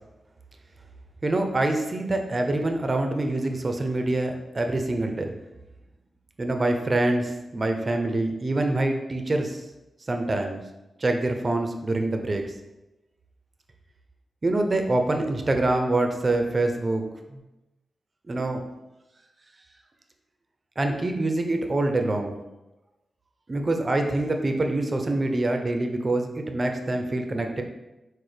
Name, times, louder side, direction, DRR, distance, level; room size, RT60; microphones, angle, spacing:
voice 1, 1.2-5.3 6.4-9.6 10.1-10.6 11.0-12.5 14.4-17.0 17.3-17.4 18.3-18.6 20.8-22.4 23.5-27.6, right 2 dB, 35° right, 5 dB, 0.5 m, -25 dB
6.1 x 2.1 x 3.3 m, 0.98 s
cardioid pair, 80°, 0 cm